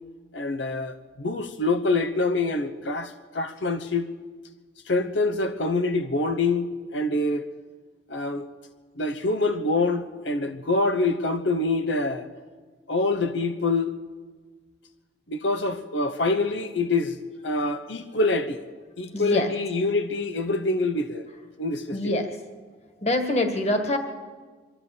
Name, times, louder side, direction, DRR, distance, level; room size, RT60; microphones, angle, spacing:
voice 1, 0.3-4.0 4.9-7.5 8.1-8.5 9.0-12.3 12.9-13.9 15.3-17.2 17.4-18.6 19.0-21.3 21.6-22.2, left 2 dB, 85° left, 7 dB, 1.0 m, -25 dB
voice 2, 19.1-19.5 21.9-22.4 23.0-24.0, left 1 dB, 35° left, 5 dB, 1.8 m, -25 dB
24.0 x 13.0 x 8.5 m, 1.4 s
head